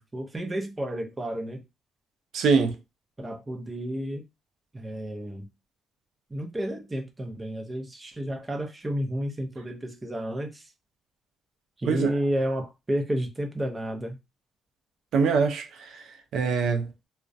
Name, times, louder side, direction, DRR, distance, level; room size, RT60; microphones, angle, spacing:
voice 1, 0.0-1.6 3.2-4.2 4.7-5.5 6.3-10.7 11.8-14.2, right 1 dB, 20° right, 0.6 m, -31 dB
voice 2, 2.3-2.8 11.9-12.1 15.1-17.1, right 5 dB, 75° right, 0.4 m, -24 dB
2.3 x 2.1 x 2.5 m
cardioid pair, 90°, 0 cm